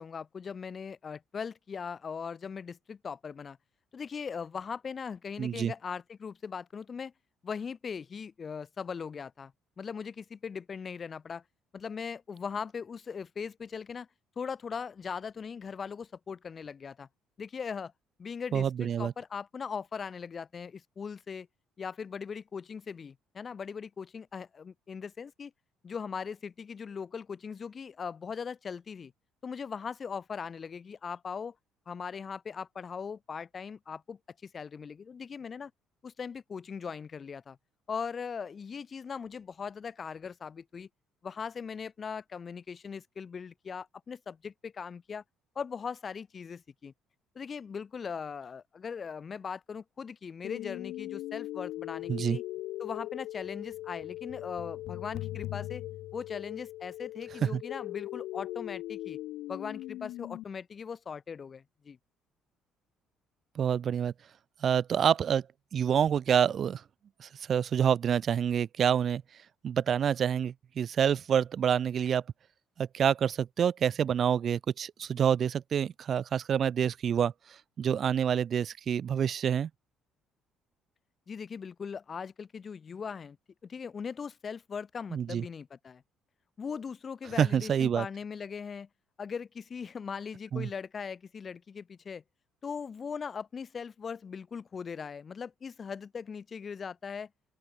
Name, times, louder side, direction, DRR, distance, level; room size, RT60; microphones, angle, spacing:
voice 1, 0.0-3.6 3.9-7.1 7.4-9.5 9.8-11.4 11.7-14.1 14.4-17.1 17.4-17.9 18.2-21.5 21.8-25.5 25.8-29.1 29.4-31.5 31.9-35.7 36.0-37.6 37.9-40.9 41.2-45.2 45.5-46.9 47.3-52.4 52.8-55.8 56.1-59.2 59.5-62.0 81.3-83.4 83.6-86.0 86.6-88.9 89.2-92.2 92.6-97.3, left 6 dB, 30° left, 6.4 m, -39 dB
voice 2, 5.4-5.7 18.5-19.1 52.1-52.4 57.4-57.6 63.5-64.1 64.6-65.4 65.7-66.8 67.2-69.2 69.6-72.2 72.8-77.3 77.8-79.7 85.1-85.4 87.4-88.1 90.5-90.7, right 8 dB, 40° right, 1.5 m, -27 dB
sound 1, 50.4-60.4, left 16 dB, 75° left, 2.5 m, -39 dB
open air
cardioid pair, 140°, 0 cm